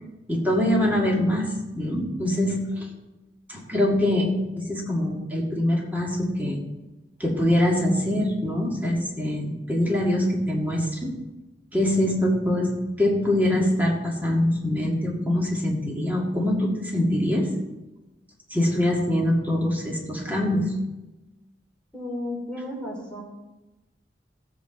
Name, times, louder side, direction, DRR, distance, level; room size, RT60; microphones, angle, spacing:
voice 1, 0.3-2.9 3.5-6.6 7.2-11.1 11.7-12.7 13.0-17.5 18.5-20.8, left 1 dB, 10° right, -2 dB, 2.0 m, -24 dB
voice 2, 21.9-23.2, left 1 dB, 5° left, -4 dB, 3.3 m, -33 dB
17.5 x 8.3 x 4.0 m, 1.1 s
head